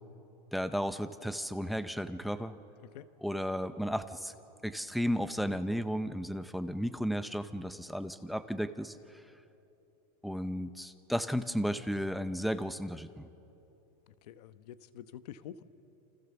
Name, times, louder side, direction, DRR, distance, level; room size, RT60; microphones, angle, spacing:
voice 1, 0.5-2.5 3.2-4.3 4.6-9.0 10.2-13.3, equal, ahead, 11 dB, 0.5 m, -34 dB
voice 2, 14.2-15.6, left 10 dB, 75° left, 12 dB, 1.2 m, -47 dB
28.5 x 27.0 x 6.9 m, 2.9 s
supercardioid pair, 170°, 21 cm